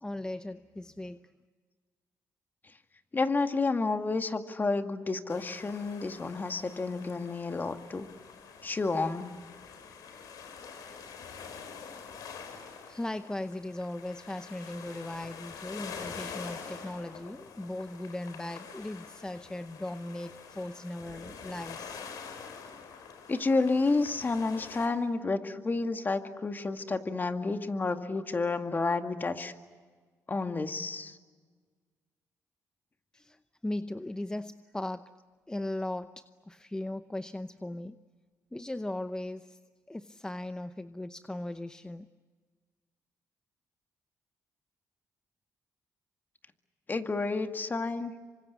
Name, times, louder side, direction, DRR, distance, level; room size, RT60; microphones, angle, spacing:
voice 1, 0.0-1.2 12.9-22.0 33.1-33.4 33.6-35.1 35.5-37.9 38.5-39.6 39.9-42.0, left 1 dB, 10° left, 11 dB, 0.8 m, -38 dB
voice 2, 3.1-8.1 8.6-9.3 23.3-29.5 30.3-31.2 46.9-48.1, left 3 dB, 30° left, 7 dB, 2.0 m, -30 dB
sound 1, 5.3-24.9, left 6 dB, 80° left, 4.5 m, -46 dB
27.0 x 25.0 x 8.3 m, 1.5 s
cardioid pair, 75°, 6 cm